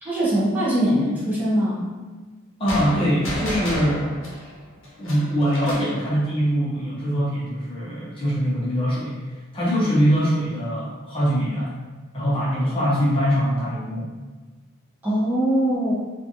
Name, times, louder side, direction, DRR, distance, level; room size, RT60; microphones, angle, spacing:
voice 1, 0.0-1.9 15.0-15.9, equal, 10° right, -9 dB, 0.8 m, -22 dB
voice 2, 2.6-4.1 5.0-11.7 12.1-14.1, equal, 25° left, -7 dB, 0.7 m, -23 dB
sound 1, 2.7-6.0, left 1 dB, 65° left, 0.8 m, -32 dB
3.0 x 2.4 x 2.6 m, 1.3 s
head